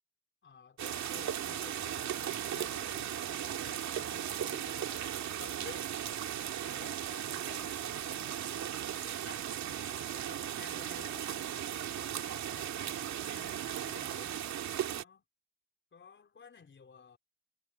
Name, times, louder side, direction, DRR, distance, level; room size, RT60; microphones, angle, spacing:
voice 1, 0.4-3.2 3.4-5.9 6.3-11.5 11.9-15.2 15.9-17.2, left 5 dB, 40° left, 4.5 m, -55 dB
sound 1, 0.8-15.0, right 10 dB, 65° right, 2.3 m, -37 dB
cardioid pair, 90°, 30 cm